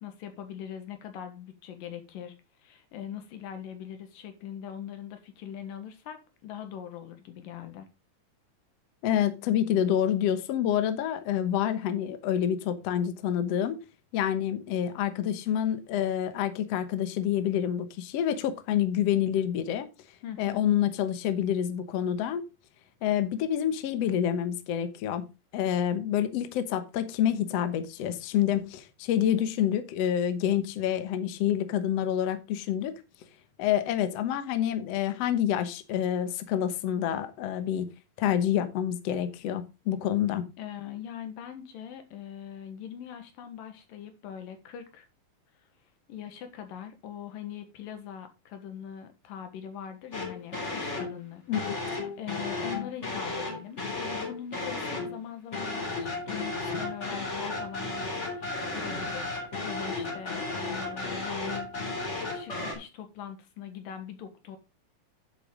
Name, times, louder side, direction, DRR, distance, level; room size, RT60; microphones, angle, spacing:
voice 1, 0.0-2.3 2.6-7.9 20.2-20.6 40.6-45.1 46.1-51.4 51.8-59.3 59.7-61.7 62.3-64.6, left 9 dB, 80° left, 3.1 m, -42 dB
voice 2, 9.0-13.8 14.1-19.9 20.4-22.4 23.0-25.3 25.5-32.9 33.6-37.9 38.2-40.5 51.5-51.8, left 10 dB, 60° left, 1.8 m, -27 dB
sound 1, 50.1-51.2 51.5-55.2 55.5-62.7, left 3 dB, 20° left, 3.4 m, -34 dB
10.5 x 7.9 x 3.8 m
omnidirectional pair, 3.9 m